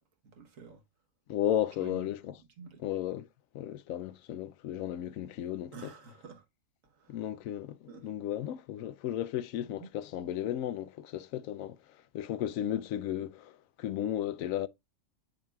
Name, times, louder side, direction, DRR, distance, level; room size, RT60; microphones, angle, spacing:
voice 1, 0.2-0.8 1.8-2.1 2.4-2.8 5.7-6.4 6.8-7.3 7.9-8.1 9.6-9.9, right 5 dB, 80° right, 1.5 m, -49 dB
voice 2, 1.3-2.3 2.8-3.3 3.5-5.9 7.1-11.8 12.1-14.7, left 11 dB, 85° left, 1.0 m, -34 dB
8.5 x 6.5 x 2.3 m
omnidirectional pair, 1.4 m